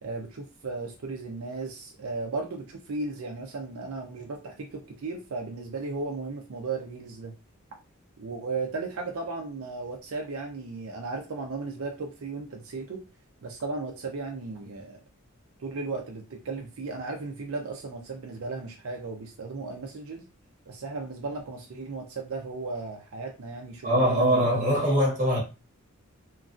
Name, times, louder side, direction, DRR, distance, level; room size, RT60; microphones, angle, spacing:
voice 1, 0.0-7.3 8.2-13.0 13.4-15.0 15.6-20.3 20.7-24.5 24.8-25.0, right 3 dB, 70° right, 0.5 m, -35 dB
voice 2, 23.8-25.4, equal, 35° right, 1.0 m, -22 dB
3.0 x 2.4 x 2.4 m
head